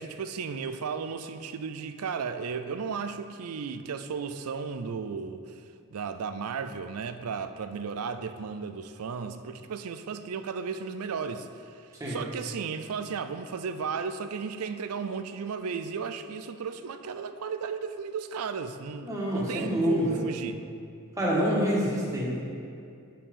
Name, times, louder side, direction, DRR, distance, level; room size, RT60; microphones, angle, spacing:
voice 1, 0.0-5.6 5.9-20.6, right 5 dB, 85° right, 9 dB, 0.5 m, -35 dB
voice 2, 19.0-20.2 21.2-22.3, equal, 15° right, -5 dB, 1.6 m, -26 dB
8.6 x 5.7 x 5.4 m, 2.4 s
head